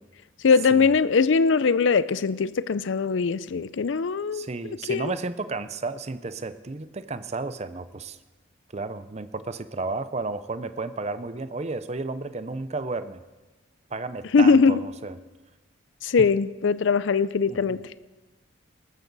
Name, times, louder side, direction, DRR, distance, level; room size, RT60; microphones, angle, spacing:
voice 1, 0.4-4.5 4.9-5.1 14.3-14.8 16.0-17.8, left 5 dB, 70° left, 17 dB, 0.5 m, -21 dB
voice 2, 4.3-8.2 8.7-13.2 13.9-15.2 17.5-17.8, right 3 dB, 35° right, 13 dB, 0.6 m, -33 dB
19.5 x 14.0 x 4.0 m, 1.2 s
head